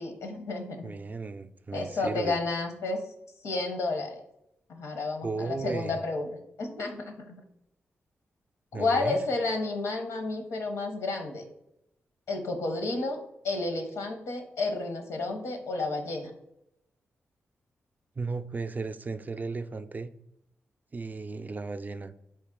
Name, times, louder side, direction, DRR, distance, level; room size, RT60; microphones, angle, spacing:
voice 1, 0.0-0.9 1.7-3.0 3.4-4.2 4.7-6.3 6.6-7.3 8.7-11.5 12.3-16.3, left 3 dB, 85° left, 4 dB, 0.7 m, -31 dB
voice 2, 0.8-2.4 5.2-6.0 8.7-9.2 18.2-20.1 20.9-22.1, right 4 dB, 35° right, 10 dB, 0.3 m, -35 dB
4.0 x 2.8 x 3.6 m, 0.80 s
cardioid pair, 50°, 5 cm